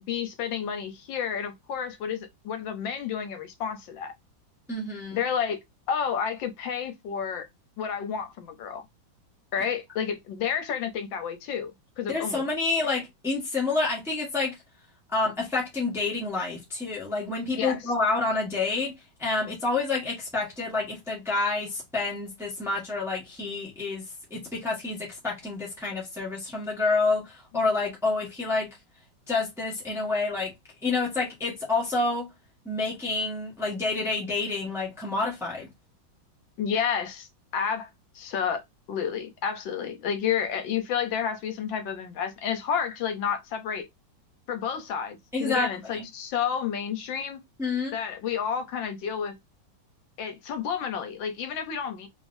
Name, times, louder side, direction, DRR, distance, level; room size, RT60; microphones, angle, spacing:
voice 1, 0.0-4.1 5.1-5.6 5.9-7.5 7.8-8.8 9.5-11.7 12.0-12.4 17.5-17.8 36.6-38.6 38.9-43.9 44.5-47.4 47.9-49.3 50.2-52.1, left 7 dB, 75° left, 1.5 m, -30 dB
voice 2, 4.7-5.2 12.1-14.6 15.1-18.9 19.2-24.0 24.3-28.8 29.3-30.5 30.8-32.3 32.6-35.7 45.3-46.0 47.6-47.9, left 3 dB, ahead, 1.2 m, -28 dB
3.7 x 3.4 x 2.6 m
omnidirectional pair, 2.1 m